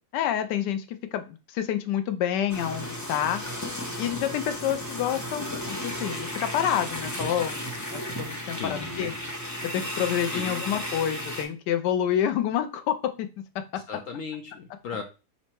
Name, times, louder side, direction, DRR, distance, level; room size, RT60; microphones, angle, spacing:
voice 1, 0.1-3.4 4.0-9.1 9.7-13.3, left 10 dB, 90° left, 9 dB, 1.2 m, -28 dB
sound 1, 2.5-11.4, equal, 25° left, 0.4 m, -34 dB
voice 2, 8.5-9.2 10.3-10.6 13.9-15.0, left 6 dB, 65° left, 5 dB, 0.9 m, -36 dB
5.5 x 2.2 x 4.4 m, 0.31 s
omnidirectional pair, 1.8 m